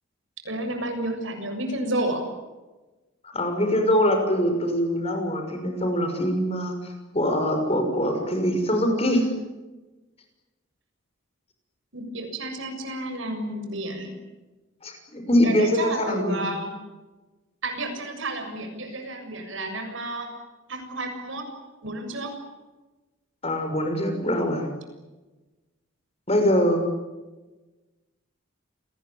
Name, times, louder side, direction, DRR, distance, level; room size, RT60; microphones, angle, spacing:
voice 1, 0.4-2.3 11.9-14.1 15.4-16.8 17.6-20.3 20.7-21.5 21.8-22.3, right 1 dB, 70° right, 5 dB, 7.3 m, -31 dB
voice 2, 3.2-9.3 14.8-16.5 23.4-24.7 26.3-26.8, equal, 30° left, 5 dB, 6.2 m, -23 dB
29.0 x 21.0 x 9.0 m, 1.2 s
head